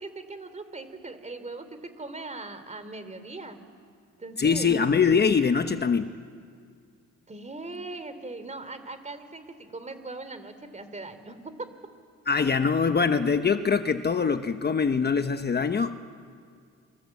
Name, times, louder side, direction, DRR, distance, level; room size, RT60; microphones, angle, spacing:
voice 1, 0.0-3.6 4.2-4.7 7.3-11.7, right 2 dB, 25° right, 10 dB, 3.2 m, -40 dB
voice 2, 4.4-6.1 12.3-16.0, left 5 dB, 35° left, 9 dB, 1.0 m, -23 dB
27.0 x 24.5 x 8.5 m, 2.2 s
cardioid pair, 90°, 30 cm